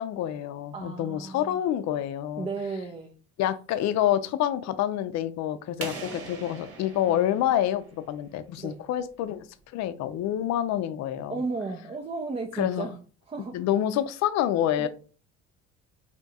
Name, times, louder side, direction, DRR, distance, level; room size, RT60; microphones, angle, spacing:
voice 1, 0.0-2.5 3.4-11.4 12.5-12.9 13.5-14.9, left 11 dB, 60° left, 12 dB, 0.5 m, -27 dB
voice 2, 0.7-1.6 2.4-3.2 7.1-7.2 8.6-8.8 11.3-13.0 13.3-13.6 14.8-14.9, right 3 dB, 20° right, 3 dB, 0.5 m, -34 dB
sound 1, 5.8-8.5, right 4 dB, 45° right, 1.2 m, -41 dB
2.8 x 2.3 x 4.0 m, 0.37 s
cardioid pair, 100°, 31 cm